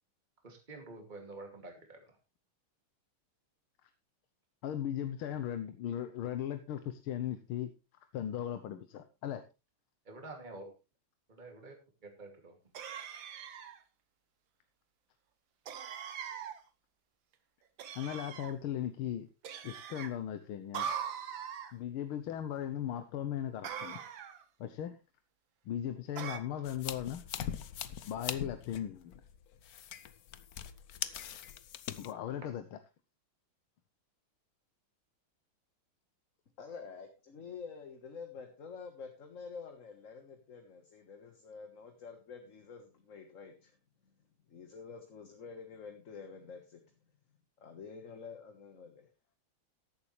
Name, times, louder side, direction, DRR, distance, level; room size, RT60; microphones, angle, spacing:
voice 1, 0.4-2.2 10.1-10.7 11.3-12.6, right 2 dB, 20° right, 3 dB, 2.6 m, -48 dB
voice 2, 4.6-7.7 8.1-9.4 18.0-19.3 19.6-20.9 21.7-24.0 24.6-25.0 25.7-27.2 28.1-29.1 32.0-32.8, left 10 dB, 80° left, 9 dB, 1.7 m, -37 dB
sound 1, 12.7-13.8 15.7-16.6 17.8-18.5 19.4-20.1 20.7-21.7 23.6-24.4 26.2-26.4, right 8 dB, 70° right, 1.9 m, -41 dB
sound 2, 26.6-32.1, left 9 dB, 60° left, 1.0 m, -42 dB
voice 3, 36.6-43.7 44.5-46.8 47.6-49.1, left 5 dB, 40° left, 5 dB, 1.6 m, -48 dB
14.5 x 11.0 x 3.2 m, 0.27 s
omnidirectional pair, 2.3 m